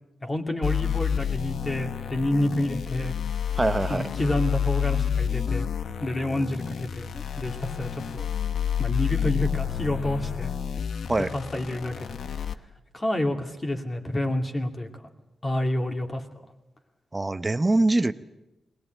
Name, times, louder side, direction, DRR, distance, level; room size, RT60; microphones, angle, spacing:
voice 1, 0.2-3.2 3.9-5.7 6.0-8.3 8.8-10.5 11.3-12.2 12.9-14.9 15.4-16.2, left 1 dB, 25° left, 4 dB, 2.6 m, -28 dB
sound 1, 0.6-12.5, left 8 dB, 70° left, 1.0 m, -29 dB
voice 2, 3.5-4.1 11.1-11.3 17.1-18.1, right 2 dB, 20° right, 11 dB, 0.8 m, -23 dB
21.0 x 20.5 x 9.2 m, 1.0 s
wide cardioid pair, 125°, 0 cm